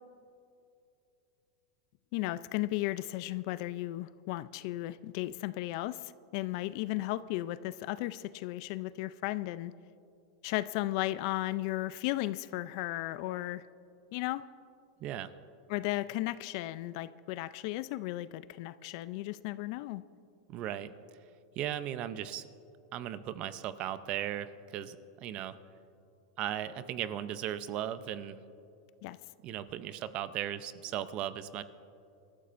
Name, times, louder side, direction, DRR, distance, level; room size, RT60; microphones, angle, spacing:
voice 1, 2.1-9.7 10.4-13.6 14.1-14.5 15.7-20.0 29.0-29.2, left 17 dB, 45° left, 16 dB, 0.3 m, -35 dB
voice 2, 15.0-15.3 20.5-20.9 21.6-22.5 22.9-25.6 26.4-28.4 29.4-31.6, right 11 dB, 35° right, 13 dB, 0.5 m, -37 dB
27.5 x 13.5 x 2.5 m, 2.6 s
supercardioid pair, 160°, 3 cm